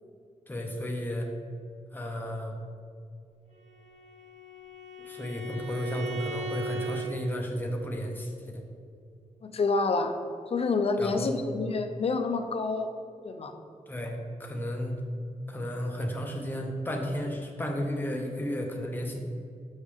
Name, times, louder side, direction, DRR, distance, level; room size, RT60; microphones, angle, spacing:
voice 1, 0.5-1.3 1.9-2.6 5.0-8.6 11.0-11.4 13.9-15.0 15.5-19.2, equal, 15° left, 1 dB, 0.8 m, -33 dB
Bowed string instrument, 3.6-7.1, right 2 dB, 55° right, 0.9 m, -38 dB
voice 2, 9.4-10.2 10.5-12.9 13.2-13.5, left 3 dB, 50° left, 6 dB, 0.5 m, -28 dB
6.3 x 5.1 x 3.5 m, 2.4 s
wide cardioid pair, 130°, 13 cm